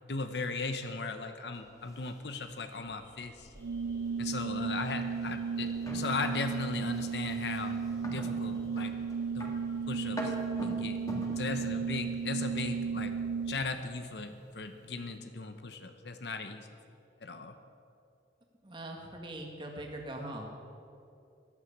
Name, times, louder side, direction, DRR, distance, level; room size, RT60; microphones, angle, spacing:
voice 1, 0.0-3.5 4.2-7.8 8.1-8.9 9.3-9.5 9.9-10.3 10.6-11.0 11.4-13.1 13.5-16.7 17.2-17.6, left 3 dB, 70° left, 8 dB, 0.9 m, -37 dB
sound 1, 1.6-12.7, equal, 20° left, 2.0 m, -46 dB
Organ, 3.6-13.9, right 5 dB, 70° right, 0.4 m, -34 dB
voice 2, 18.6-20.5, right 1 dB, 30° right, 0 dB, 1.9 m, -41 dB
15.0 x 11.0 x 8.7 m, 2.7 s
head